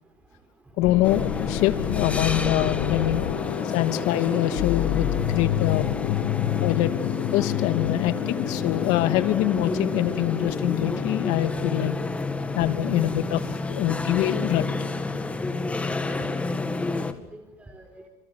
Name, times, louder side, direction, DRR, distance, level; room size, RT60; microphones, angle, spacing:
sound 1, 0.8-11.3, left 13 dB, 80° left, 2.3 m, -29 dB
voice 1, 0.8-3.2 3.7-5.8 6.6-6.9 7.3-11.9 12.5-13.4 13.7-14.6, left 14 dB, 65° left, 9 dB, 2.7 m, -24 dB
sound 2, 1.0-17.1, left 3 dB, 10° left, 2.2 m, -30 dB
voice 2, 16.1-16.5 16.8-18.1, right 2 dB, 10° right, 4 dB, 4.2 m, -43 dB
30.0 x 28.5 x 6.8 m, 0.88 s
cardioid pair, 165°, 13 cm